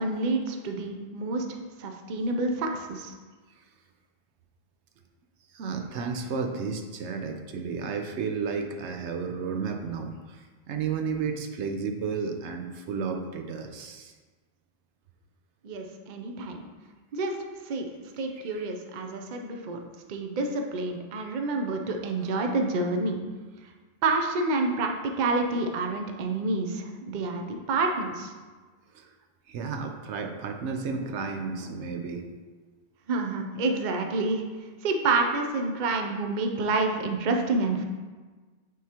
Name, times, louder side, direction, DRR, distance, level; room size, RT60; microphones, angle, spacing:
voice 1, 0.0-1.5 1.8-3.1 15.6-16.7 17.1-17.4 17.6-17.9 18.2-19.8 20.1-23.2 24.0-28.3 33.1-34.4 34.8-37.8, right 3 dB, 50° right, 3 dB, 0.7 m, -28 dB
voice 2, 5.5-14.1 18.5-18.7 28.9-29.1 29.5-32.3, right 5 dB, 85° right, 4 dB, 0.9 m, -32 dB
9.2 x 3.7 x 2.9 m, 1.4 s
omnidirectional pair, 1.1 m